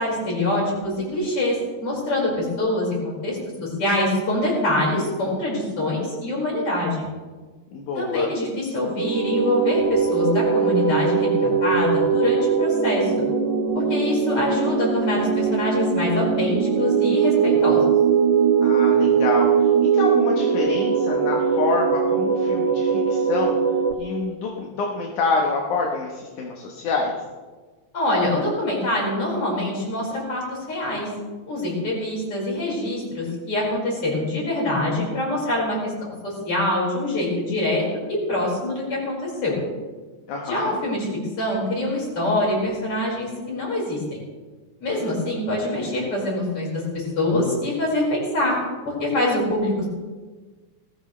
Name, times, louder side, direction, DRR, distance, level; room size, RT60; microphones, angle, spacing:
voice 1, 0.0-1.6 1.8-7.1 7.9-13.1 13.7-17.8 27.9-31.1 31.5-37.8 38.1-39.6 40.5-41.1 41.4-44.0 44.8-48.6 48.9-49.9, left 1 dB, 45° left, -3 dB, 6.2 m, -24 dB
voice 2, 7.7-8.3 18.6-23.6 24.0-27.1 40.3-40.8, left 4 dB, 75° left, 0 dB, 2.8 m, -27 dB
sound 1, 8.9-23.9, right 6 dB, 65° right, 3.0 m, -21 dB
20.0 x 16.5 x 3.3 m, 1.3 s
omnidirectional pair, 3.6 m